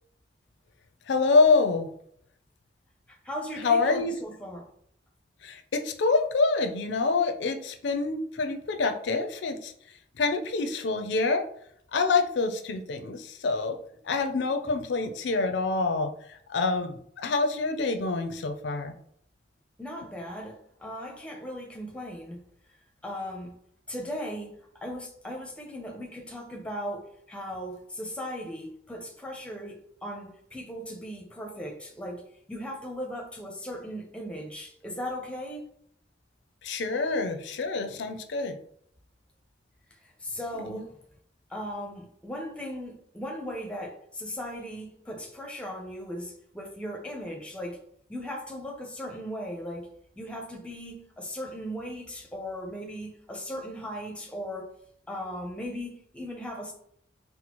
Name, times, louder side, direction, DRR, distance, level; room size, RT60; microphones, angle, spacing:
voice 1, 1.1-1.9 3.6-4.2 5.4-9.7 10.2-11.5 11.9-13.8 14.0-18.9 36.6-38.6 40.6-40.9, left 3 dB, 65° left, 0.4 m, -26 dB
voice 2, 3.2-4.7 19.8-22.4 23.0-23.6 23.9-32.2 32.5-35.7 40.2-41.0 41.5-47.8 48.1-49.9 50.2-54.7 55.1-56.7, equal, 5° left, 0.5 m, -37 dB
4.1 x 2.0 x 2.9 m
head